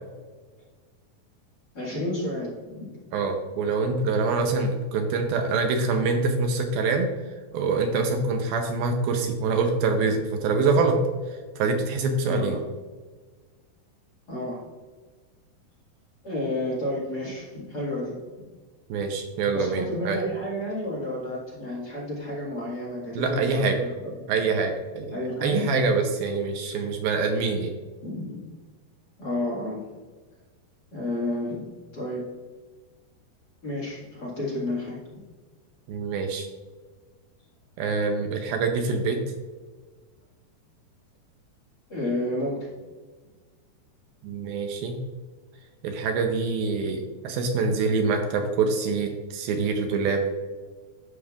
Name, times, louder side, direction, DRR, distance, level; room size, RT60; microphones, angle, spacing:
voice 1, 1.7-3.1 12.2-12.6 14.3-14.6 16.2-18.5 19.5-24.3 25.1-25.6 28.0-28.6 29.2-29.8 30.9-31.7 31.9-32.3 33.6-35.2 41.9-42.7, left 1 dB, 40° left, -7 dB, 1.6 m, -31 dB
voice 2, 3.1-7.1 7.5-11.0 11.6-12.6 18.9-20.2 23.2-23.8 24.3-25.1 25.4-27.7 35.9-36.5 37.8-39.2 44.2-45.0 45.8-50.3, right 4 dB, 80° right, 4 dB, 2.4 m, -25 dB
13.0 x 5.3 x 2.4 m, 1.4 s
omnidirectional pair, 4.6 m